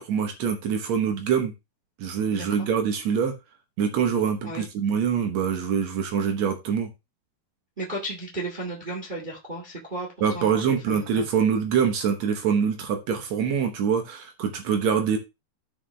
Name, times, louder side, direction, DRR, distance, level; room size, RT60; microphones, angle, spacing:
voice 1, 0.0-1.5 2.0-3.3 3.8-6.9 10.2-15.2, right 7 dB, 80° right, 5 dB, 1.5 m, -24 dB
voice 2, 2.3-2.7 4.4-4.6 7.8-10.1 10.3-10.6 10.9-11.2, right 1 dB, 65° right, -2 dB, 0.4 m, -34 dB
14.5 x 5.1 x 3.3 m, 0.25 s
omnidirectional pair, 4.9 m